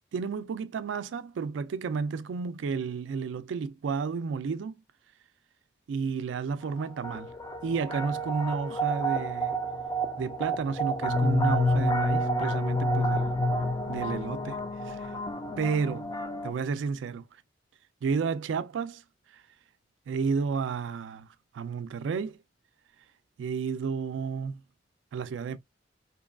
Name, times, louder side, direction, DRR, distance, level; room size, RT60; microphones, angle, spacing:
voice 1, 0.1-4.8 5.9-7.3 7.6-9.6 10.2-13.3 13.9-14.6 14.8-15.1 15.6-16.1 16.4-17.2 18.0-19.0 19.3-19.4 20.1-21.3 21.5-22.4 23.4-24.6 25.1-25.6, right 5 dB, 85° right, 0.3 m, -31 dB
sound 1, 6.6-16.5, equal, 20° left, 0.4 m, -29 dB
2.8 x 2.3 x 2.2 m
head